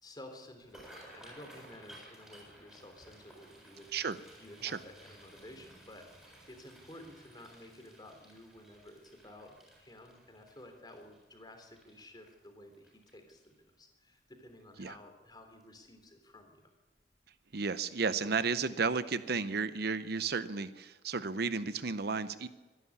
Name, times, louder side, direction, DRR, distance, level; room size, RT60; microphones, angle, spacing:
voice 1, 0.0-3.9 4.4-16.7, left 1 dB, 25° left, 5 dB, 3.3 m, -53 dB
sound 1, 0.6-13.7 14.2-14.4 14.8-15.2 15.6-15.8 17.0-17.2 17.5-17.7 18.1-18.2, right 1 dB, 5° right, 7.5 m, -57 dB
voice 2, 17.5-22.5, right 4 dB, 60° right, 13 dB, 0.8 m, -33 dB
24.5 x 11.5 x 9.7 m, 1.2 s
head